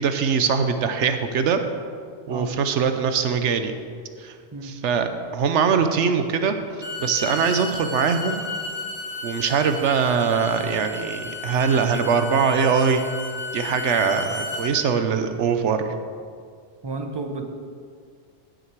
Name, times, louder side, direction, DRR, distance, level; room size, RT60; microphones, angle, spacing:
voice 1, 0.0-1.6 2.3-3.7 4.2-4.3 4.6-6.6 7.0-8.5 9.2-13.0 13.5-15.8, right 6 dB, 85° right, 8 dB, 1.1 m, -22 dB
Bowed string instrument, 6.7-14.7, left 2 dB, 35° left, 1.9 m, -33 dB
voice 2, 16.8-17.4, right 3 dB, 25° right, 4 dB, 0.9 m, -31 dB
16.5 x 6.5 x 4.6 m, 2.1 s
omnidirectional pair, 1.2 m